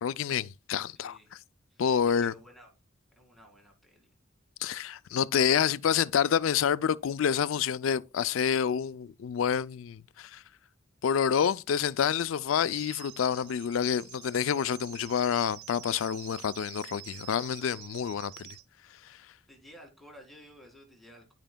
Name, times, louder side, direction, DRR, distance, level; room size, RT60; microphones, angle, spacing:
voice 1, 0.0-1.4 1.8-2.3 4.6-10.4 11.0-18.6, left 8 dB, 75° left, 0.4 m, -28 dB
voice 2, 1.0-1.3 1.7-1.9 2.2-2.7 3.2-4.1 19.5-21.3, equal, ahead, 2.0 m, -53 dB
sound 1, 12.7-18.6, right 14 dB, 60° right, 0.7 m, -48 dB
12.5 x 5.2 x 2.2 m
head